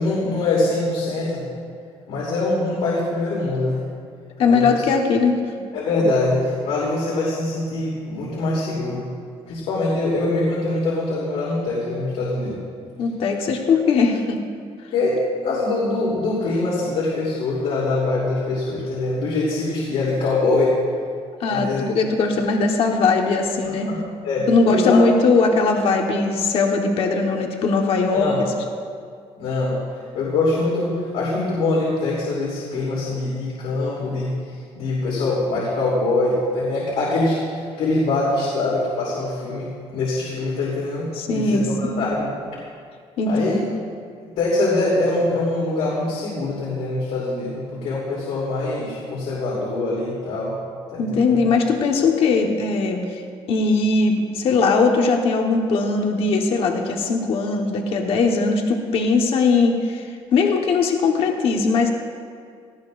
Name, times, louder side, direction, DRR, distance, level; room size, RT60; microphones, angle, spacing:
voice 1, 0.0-1.4 2.1-3.8 4.5-4.7 5.7-9.0 9.5-12.6 14.9-15.2 15.4-20.7 21.5-21.9 23.6-25.0 28.1-28.4 29.4-42.3 43.3-43.6 44.4-50.5 50.9-51.4, left 2 dB, 85° left, -7 dB, 3.1 m, -23 dB
voice 2, 4.4-5.4 13.0-14.4 21.4-23.9 24.5-28.3 41.1-42.1 43.2-43.7 51.0-53.2 53.5-61.9, left 4 dB, 60° left, 2 dB, 1.3 m, -20 dB
18.0 x 15.0 x 2.6 m, 2.2 s
cardioid pair, 160°, 11 cm